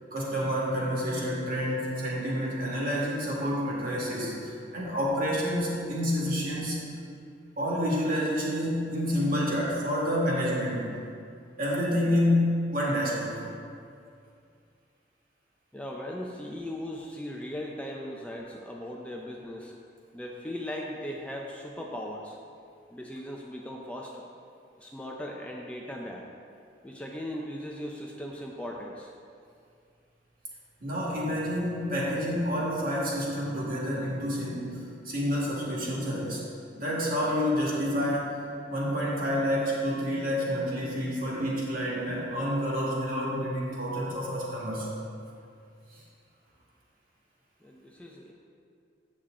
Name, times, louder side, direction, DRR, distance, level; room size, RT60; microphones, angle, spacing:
voice 1, 0.1-6.8 7.6-10.9 11.6-13.4 30.8-36.4 36.7-38.3 38.7-44.9 45.9-46.0, equal, 55° right, -5 dB, 2.0 m, -28 dB
voice 2, 15.7-19.7 20.1-22.4 22.9-24.2 24.8-26.3 26.8-29.1 47.6-48.3, left 1 dB, 5° left, -1 dB, 0.5 m, -38 dB
8.4 x 7.4 x 3.7 m, 2.4 s
head